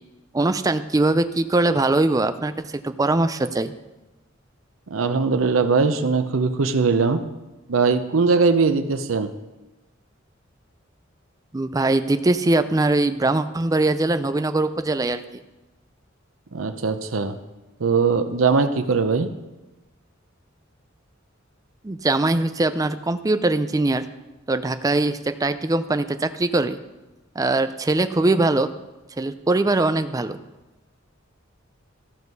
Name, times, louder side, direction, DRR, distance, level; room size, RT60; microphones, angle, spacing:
voice 1, 0.3-3.7 11.5-15.2 21.8-24.1 24.5-26.8 27.4-28.7 29.2-30.4, right 2 dB, 20° right, 10 dB, 0.4 m, -21 dB
voice 2, 4.9-7.2 7.7-9.3 16.5-17.4 17.8-19.3, right 4 dB, 90° right, 8 dB, 0.7 m, -20 dB
14.0 x 6.3 x 5.4 m, 1.1 s
head